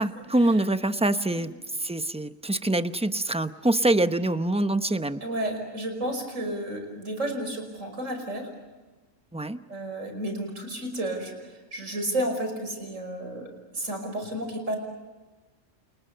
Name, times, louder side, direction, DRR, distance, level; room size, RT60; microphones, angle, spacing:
voice 1, 0.0-1.5 1.8-5.2 9.3-9.6, right 1 dB, 5° right, 10 dB, 0.7 m, -25 dB
voice 2, 5.2-8.5 9.7-11.4 11.7-13.5 13.7-14.8, right 1 dB, 75° right, 5 dB, 5.9 m, -31 dB
29.5 x 29.0 x 6.8 m, 1.2 s
omnidirectional pair, 1.3 m